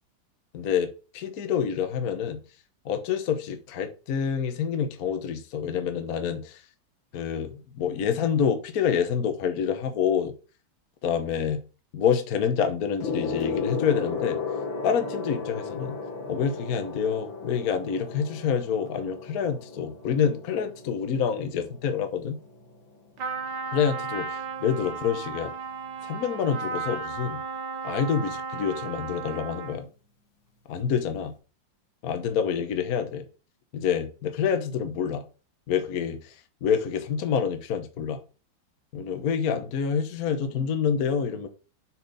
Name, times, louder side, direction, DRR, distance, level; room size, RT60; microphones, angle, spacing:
voice 1, 0.5-2.4 2.8-6.6 7.1-10.3 11.0-11.6 11.9-14.4 14.8-16.0 16.3-22.4 23.7-25.5 26.0-27.4 27.8-29.9 30.7-31.3 32.0-33.3 33.7-35.2 35.7-36.3 36.6-38.2 38.9-41.5, left 7 dB, 55° left, 1.3 m, -27 dB
Gong, 13.0-22.8 23.7-24.0, left 5 dB, 90° left, 2.3 m, -35 dB
Trumpet, 23.2-29.9, right 5 dB, 65° right, 1.7 m, -35 dB
7.0 x 6.1 x 4.1 m
omnidirectional pair, 2.1 m